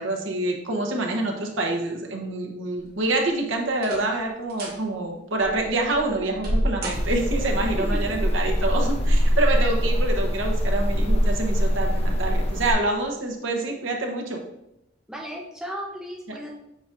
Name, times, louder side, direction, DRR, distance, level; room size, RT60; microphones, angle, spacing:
voice 1, 0.0-14.4, right 2 dB, 85° right, 2 dB, 1.1 m, -26 dB
sound 1, 2.8-3.2 3.7-4.2 4.5-4.8 5.4-7.6 8.8-9.4 9.8-9.9 10.7-10.9 11.2-11.3, equal, 55° right, 1.6 m, -30 dB
sound 2, 6.9-12.7, equal, 35° left, 0.8 m, -23 dB
voice 2, 7.8-8.3 15.1-16.6, equal, 5° right, -2 dB, 0.8 m, -35 dB
7.9 x 4.8 x 2.6 m, 0.83 s
head